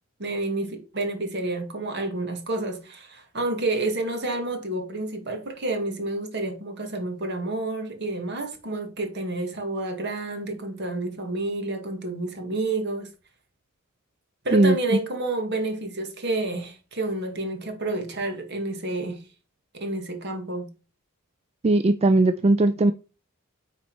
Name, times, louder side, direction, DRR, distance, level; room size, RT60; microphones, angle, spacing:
voice 1, 0.2-13.1 14.4-19.2 19.7-20.7, right 2 dB, 50° right, 1.9 m, -29 dB
voice 2, 14.5-15.0 21.6-22.9, right 2 dB, 30° right, 0.3 m, -19 dB
9.3 x 4.3 x 4.6 m
head